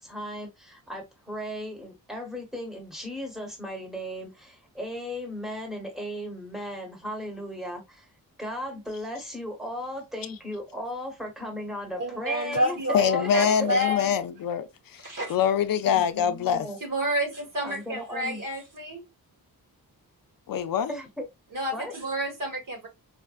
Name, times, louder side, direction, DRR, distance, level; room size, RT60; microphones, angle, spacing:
voice 1, 0.0-8.1 8.4-14.0 15.9-16.8 17.6-18.4 20.9-21.3 21.7-21.9, equal, ahead, 1.1 m, -36 dB
voice 2, 12.0-14.1 15.0-15.4 16.8-19.0 21.5-22.9, equal, 60° right, 1.8 m, -29 dB
voice 3, 12.9-15.0 15.3-16.7 20.5-20.9, left 8 dB, 65° left, 0.5 m, -24 dB
4.9 x 2.4 x 2.3 m
wide cardioid pair, 165°, 37 cm